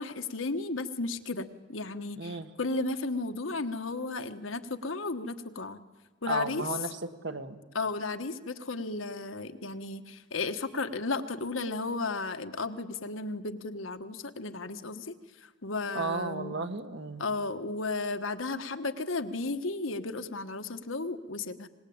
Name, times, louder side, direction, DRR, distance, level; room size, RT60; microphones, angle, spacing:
voice 1, 0.0-5.8 6.2-6.6 7.7-15.2 15.4-16.5 17.2-21.7, left 3 dB, 80° left, 8 dB, 1.4 m, -34 dB
voice 2, 2.2-2.5 6.2-7.6 15.9-17.2, right 3 dB, 60° right, 8 dB, 1.6 m, -34 dB
25.5 x 20.0 x 8.8 m, 1.3 s
head